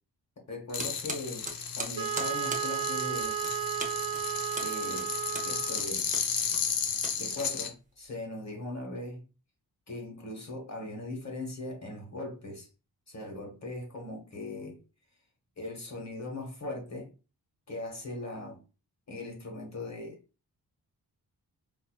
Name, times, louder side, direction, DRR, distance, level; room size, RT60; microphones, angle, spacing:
voice 1, 0.5-1.5 1.8-3.4 4.6-5.1 5.4-6.1 7.2-9.2 9.9-12.7 13.1-14.8 15.6-17.1 17.7-18.6 19.1-20.2, left 2 dB, 45° left, 1.0 m, -39 dB
sound 1, 0.7-7.7, left 6 dB, 60° left, 0.7 m, -34 dB
sound 2, 0.8-8.0, right 2 dB, 20° right, 0.6 m, -41 dB
Wind instrument woodwind instrument, 2.0-6.0, right 10 dB, 80° right, 0.9 m, -33 dB
4.2 x 2.6 x 2.2 m
wide cardioid pair, 140°, 39 cm